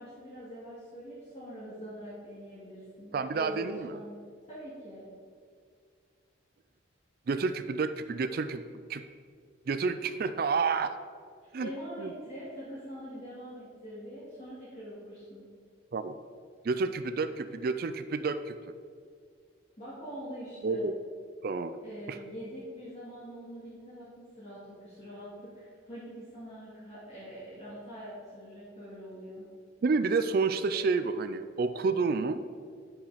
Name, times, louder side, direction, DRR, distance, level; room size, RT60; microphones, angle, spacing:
voice 1, 0.0-3.6 3.9-4.2 4.5-5.1 11.4-15.4 19.8-20.8 21.8-29.4, equal, 35° left, -9 dB, 2.3 m, -44 dB
voice 2, 3.1-4.0 7.3-8.6 8.9-9.0 9.7-11.0 11.5-11.7 12.0-12.1 15.9-16.1 16.6-18.7 20.6-20.9 21.4-21.8 22.1-22.2 29.8-32.4, right 4 dB, 50° right, 11 dB, 0.4 m, -29 dB
10.5 x 5.5 x 5.0 m, 2.2 s
head